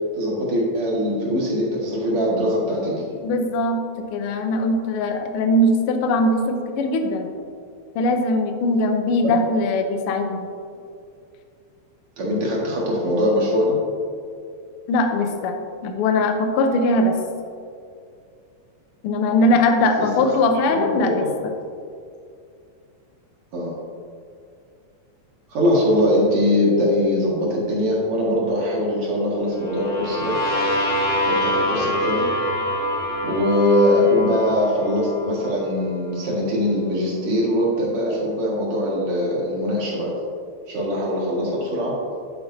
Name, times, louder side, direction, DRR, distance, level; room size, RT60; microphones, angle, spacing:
voice 1, 0.2-3.2 9.2-9.4 12.2-13.8 20.0-20.3 20.6-20.8 21.2-21.3 23.5-23.7 25.5-30.4 31.3-32.3 33.2-40.2 40.7-42.0, left 1 dB, 50° right, -5 dB, 2.6 m, -22 dB
voice 2, 3.2-7.3 7.9-10.5 14.9-17.2 19.0-21.2, left 2 dB, 70° left, 5 dB, 1.4 m, -21 dB
sound 1, 29.6-35.4, equal, 85° left, 3.4 m, -25 dB
11.0 x 8.6 x 2.7 m, 2.4 s
omnidirectional pair, 3.3 m